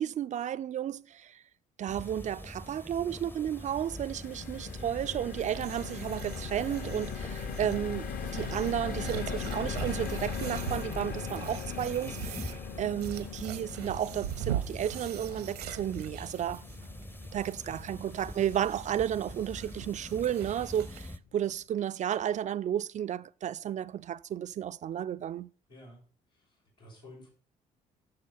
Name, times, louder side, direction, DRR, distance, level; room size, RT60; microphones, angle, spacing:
voice 1, 0.0-1.4 1.8-12.5 12.8-16.6 17.3-25.5, right 10 dB, 40° right, 0.4 m, -33 dB
sound 1, 1.9-21.2, left 1 dB, 10° left, 0.7 m, -45 dB
sound 2, 3.4-19.7 20.1-20.3 20.5-20.7, left 6 dB, 45° left, 1.0 m, -40 dB
sound 3, 5.4-21.2, right 11 dB, 80° right, 0.8 m, -43 dB
voice 2, 25.7-26.0 26.3-27.3, left 1 dB, 85° left, 6.3 m, -52 dB
9.6 x 6.7 x 5.6 m
figure-of-eight pair, 45°, 20 cm